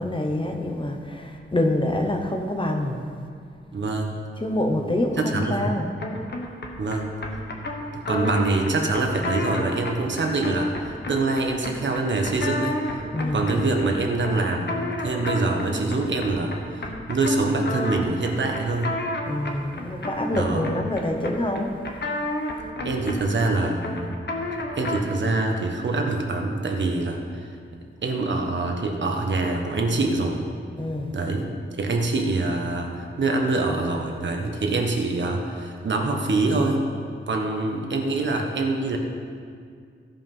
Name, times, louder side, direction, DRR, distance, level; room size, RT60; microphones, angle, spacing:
voice 1, 0.0-3.0 4.4-5.9 13.1-13.4 19.3-21.7 30.8-31.1, left 1 dB, 25° left, 3 dB, 1.0 m, -26 dB
voice 2, 3.7-4.2 5.2-5.7 6.8-7.1 7.9-12.8 13.3-19.0 20.3-20.7 22.8-24.2 24.8-27.5 28.0-30.4 31.1-31.5 31.8-36.9 37.3-39.0, right 2 dB, 60° right, 2 dB, 1.3 m, -25 dB
sound 1, 6.0-25.2, left 1 dB, 55° left, 1.3 m, -32 dB
16.0 x 5.7 x 5.6 m, 2.2 s
wide cardioid pair, 155°, 21 cm